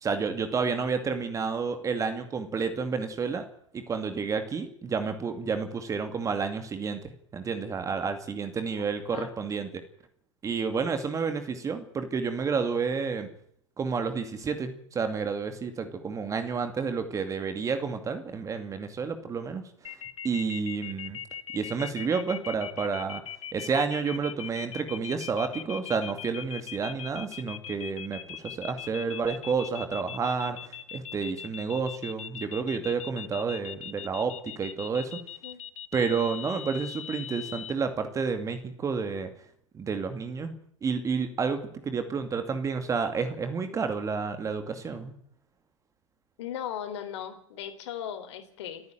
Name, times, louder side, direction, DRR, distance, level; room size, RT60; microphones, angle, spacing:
voice 1, 0.0-3.4 3.7-9.7 10.4-13.3 13.8-19.6 20.2-21.2 21.5-23.2 23.5-35.1 35.9-39.3 39.7-40.5 40.8-45.1, right 5 dB, 20° right, 8 dB, 2.3 m, -30 dB
sound 1, 19.8-37.7, left 9 dB, 75° left, 1.3 m, -40 dB
voice 2, 46.4-48.8, left 9 dB, 60° left, 9 dB, 3.8 m, -37 dB
29.5 x 9.8 x 9.2 m, 0.67 s
hypercardioid pair, 115°, 17 cm